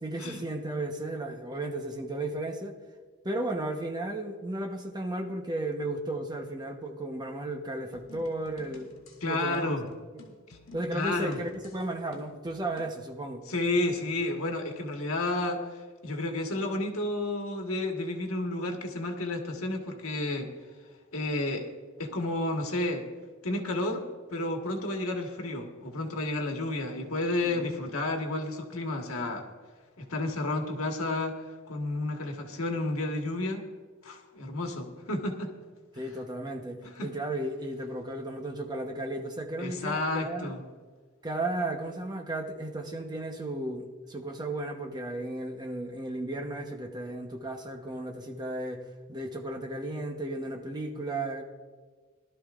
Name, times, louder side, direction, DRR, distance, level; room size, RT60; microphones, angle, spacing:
voice 1, 0.0-2.8 3.2-8.9 9.2-9.8 10.1-10.3 10.7-13.4 27.4-27.7 35.9-40.5 41.2-51.4, right 1 dB, 20° right, 3 dB, 1.0 m, -34 dB
sound 1, 7.9-13.0, left 2 dB, 65° left, 2.6 m, -53 dB
voice 2, 9.2-9.9 10.5-10.6 10.9-11.4 13.5-20.5 21.1-21.7 22.0-23.1 23.4-29.5 30.0-33.7 34.0-35.5 36.8-37.1 39.6-40.6, left 2 dB, 85° left, 3 dB, 1.5 m, -31 dB
20.0 x 12.5 x 2.5 m, 1.4 s
head